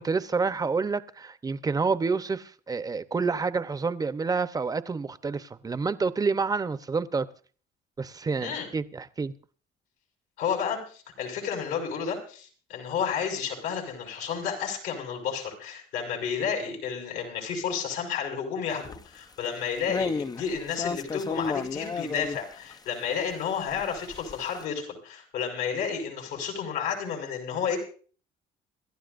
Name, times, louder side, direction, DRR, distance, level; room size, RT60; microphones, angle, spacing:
voice 1, 0.0-7.3 8.0-9.3, right 4 dB, 20° right, 0.9 m, -28 dB
voice 2, 10.4-27.8, left 7 dB, 85° left, 5.6 m, -31 dB
sound 1, 18.8-19.0 19.4-19.6 19.9-22.7 23.4-24.6, left 4 dB, 25° left, 0.6 m, -32 dB
27.5 x 12.5 x 2.6 m
cardioid pair, 110°, 17 cm